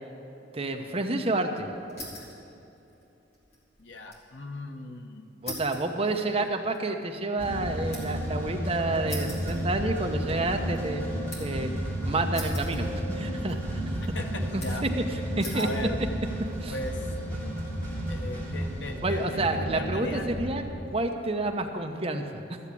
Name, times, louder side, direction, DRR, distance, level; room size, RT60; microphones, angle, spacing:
voice 1, 0.5-1.7 5.4-11.0 11.4-11.7 12.0-13.8 14.5-15.7 16.6-16.8 19.0-20.6 20.9-22.6, right 2 dB, 35° right, 4 dB, 0.9 m, -29 dB
sound 1, 1.9-2.4 2.8-4.3 4.6-4.7 5.5-8.3 9.1-10.2 10.6-11.6 12.3-13.2 13.5-14.1 14.6-15.0 15.4-15.8 16.5-16.9, left 1 dB, 35° left, 2.8 m, -42 dB
voice 2, 3.8-5.2 14.1-14.8 15.5-16.0 16.7-17.1 18.1-20.3, left 1 dB, 80° left, 4 dB, 1.1 m, -37 dB
sound 2, 7.4-20.6, right 1 dB, 10° left, 3.0 m, -32 dB
13.5 x 7.3 x 8.4 m, 2.9 s
head